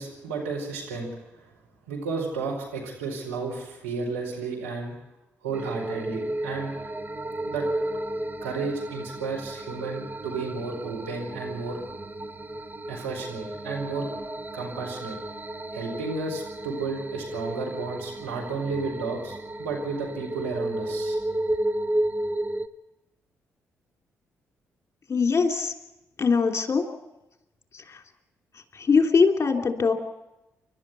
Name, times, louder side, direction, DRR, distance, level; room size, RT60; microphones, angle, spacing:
voice 1, 0.0-1.5 1.9-4.9 5.4-6.7 7.4-7.7 8.4-11.8 12.9-14.1 14.5-15.2 15.7-21.2, right 4 dB, 90° right, -1 dB, 4.5 m, -32 dB
sound 1, 5.5-22.7, right 1 dB, 25° right, 1.2 m, -33 dB
voice 2, 25.1-25.7 26.2-26.8 28.7-29.9, left 5 dB, 40° left, 3 dB, 3.1 m, -21 dB
29.5 x 12.5 x 8.3 m, 0.97 s
hypercardioid pair, 40°, 7 cm